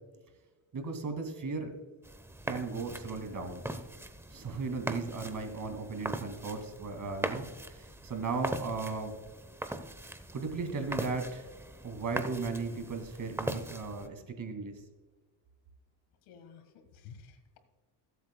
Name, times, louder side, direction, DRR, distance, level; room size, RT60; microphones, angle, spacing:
voice 1, 0.7-1.7 2.4-3.6 4.3-9.2 10.3-11.5 11.8-14.7, right 4 dB, 40° right, 6 dB, 2.3 m, -36 dB
sound 1, 2.0-14.1, right 1 dB, 5° right, 0.8 m, -40 dB
voice 2, 16.3-17.6, left 6 dB, 90° left, 8 dB, 1.8 m, -52 dB
20.5 x 8.2 x 2.2 m, 1.3 s
cardioid pair, 100°, 47 cm